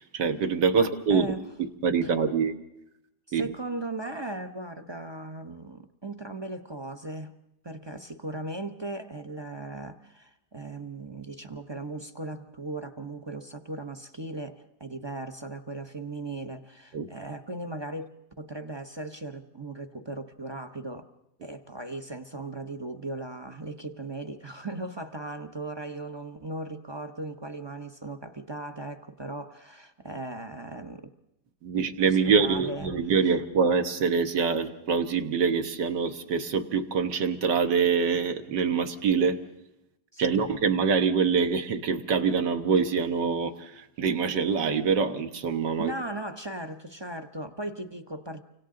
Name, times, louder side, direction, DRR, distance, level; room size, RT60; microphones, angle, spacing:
voice 1, 0.0-1.4 1.8-2.5 3.3-3.5 16.9-17.1 31.6-39.4 40.2-45.9, right 5 dB, 70° right, 7 dB, 1.9 m, -25 dB
voice 2, 0.7-1.4 2.0-2.1 3.3-7.3 7.6-21.1 21.4-31.1 31.7-31.9 32.3-32.9 33.2-33.3 40.1-40.5 45.8-48.4, right 2 dB, 25° right, 7 dB, 0.5 m, -37 dB
30.0 x 25.5 x 3.8 m, 0.86 s
omnidirectional pair, 1.9 m